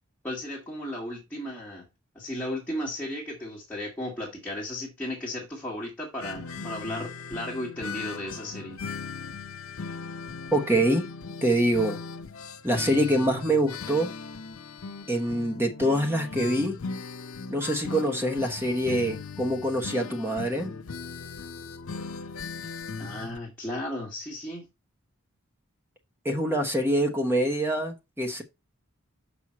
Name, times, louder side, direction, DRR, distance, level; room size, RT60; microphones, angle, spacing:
voice 1, 0.2-1.9 2.2-8.8 23.0-24.7, left 1 dB, 10° left, 1.7 m, -35 dB
sound 1, 6.2-23.4, left 4 dB, 75° left, 0.6 m, -38 dB
voice 2, 10.5-11.1 11.4-12.0 12.6-14.1 15.1-16.8 17.5-20.7 26.2-28.4, right 1 dB, 10° right, 1.1 m, -25 dB
6.2 x 5.5 x 4.2 m
head